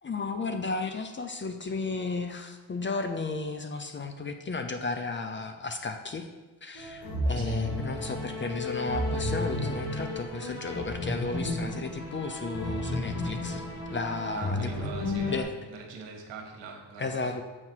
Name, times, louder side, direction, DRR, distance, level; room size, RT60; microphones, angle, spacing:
voice 1, 0.0-6.3 6.6-13.6 13.9-14.9 15.3-15.5 17.0-17.4, left 3 dB, 25° left, 7 dB, 0.5 m, -34 dB
sound 1, 6.7-15.4, left 1 dB, 55° left, 2.3 m, -32 dB
voice 2, 14.2-17.3, right 5 dB, 70° right, 1 dB, 1.5 m, -43 dB
7.8 x 3.9 x 4.5 m, 1.3 s
cardioid pair, 85°, 45 cm